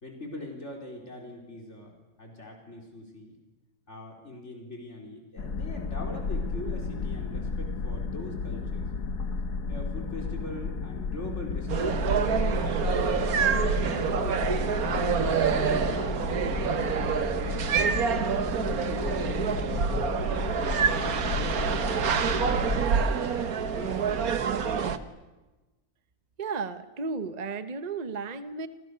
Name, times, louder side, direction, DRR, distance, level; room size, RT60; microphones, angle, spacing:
voice 1, 0.0-3.4 3.9-8.9 9.7-12.2 12.5-13.5 13.9-17.2 17.9-19.3 20.1-22.1 22.6-25.0, left 1 dB, 45° left, 1 dB, 4.7 m, -42 dB
sound 1, 5.4-22.8, left 4 dB, 90° left, 2.1 m, -33 dB
sound 2, 11.7-25.0, right 6 dB, 70° right, 1.7 m, -27 dB
voice 2, 26.4-28.7, right 4 dB, 30° right, 11 dB, 1.0 m, -34 dB
29.0 x 27.5 x 6.8 m, 1.1 s
omnidirectional pair, 1.6 m